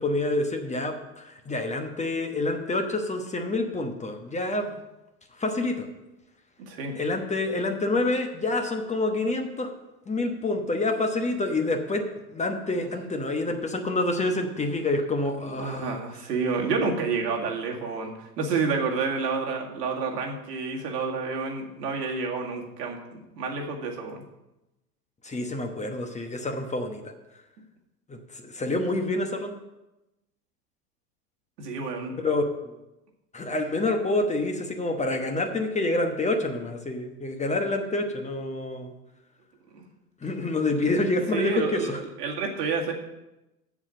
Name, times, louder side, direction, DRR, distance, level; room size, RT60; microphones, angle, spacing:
voice 1, 0.0-4.8 5.4-5.9 6.9-9.7 10.1-12.0 12.3-16.0 25.2-27.1 28.1-29.5 32.2-32.7 33.3-38.9 40.2-42.0, left 2 dB, 15° left, 5 dB, 1.1 m, -27 dB
voice 2, 6.6-7.0 12.8-12.9 15.5-24.3 31.6-32.1 39.7-39.8 40.8-40.9 41.3-42.9, right 4 dB, 75° right, 0 dB, 2.2 m, -29 dB
7.5 x 7.2 x 7.7 m, 0.96 s
hypercardioid pair, 95°, 48 cm